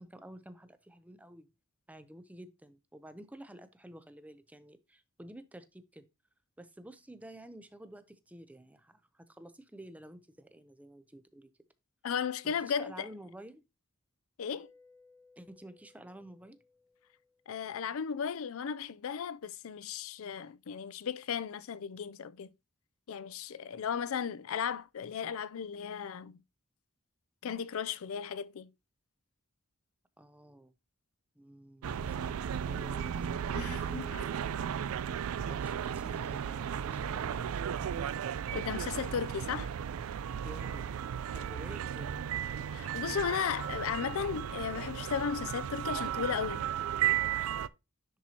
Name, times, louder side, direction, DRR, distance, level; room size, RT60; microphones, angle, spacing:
voice 1, 0.0-1.5 1.9-6.1 6.6-11.5 12.4-13.6 15.4-16.6 30.2-30.7 31.4-34.4 35.5-37.4 40.3-40.9 41.3-42.3, right 1 dB, 5° right, 0.6 m, -51 dB
voice 2, 12.0-13.1 14.4-14.7 17.5-22.5 23.1-26.4 27.4-28.7 33.5-34.3 38.5-39.7 42.7-46.6, left 7 dB, 75° left, 0.4 m, -35 dB
Mallet percussion, 14.6-18.1, left 3 dB, 15° left, 0.8 m, -64 dB
sound 1, 31.8-47.7, right 9 dB, 80° right, 0.4 m, -35 dB
10.0 x 4.4 x 2.8 m
head